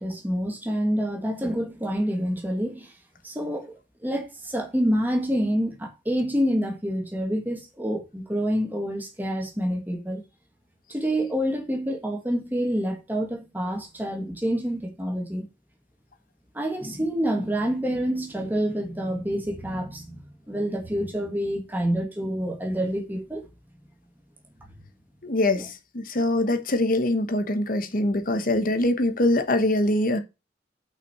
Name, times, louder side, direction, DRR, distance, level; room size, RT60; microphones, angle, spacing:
voice 1, 0.0-2.9 3.2-3.7 4.0-10.2 10.9-15.5 16.5-23.5 24.6-24.8 25.5-25.7, equal, 10° right, 1.8 m, -27 dB
voice 2, 25.2-30.2, left 1 dB, 45° left, 1.1 m, -23 dB
6.0 x 5.6 x 5.9 m
head